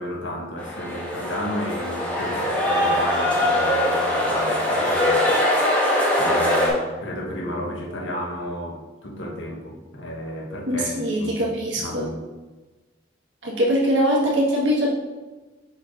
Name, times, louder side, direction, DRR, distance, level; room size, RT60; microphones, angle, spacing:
voice 1, 0.0-5.4 6.2-11.5 11.8-12.1, equal, 90° left, -1 dB, 1.3 m, -33 dB
sound 1, 0.6-6.7, left 1 dB, 5° left, 1.4 m, -22 dB
voice 2, 10.7-12.1 13.4-14.9, equal, 80° right, -4 dB, 1.7 m, -22 dB
5.9 x 4.3 x 4.0 m, 1.2 s
head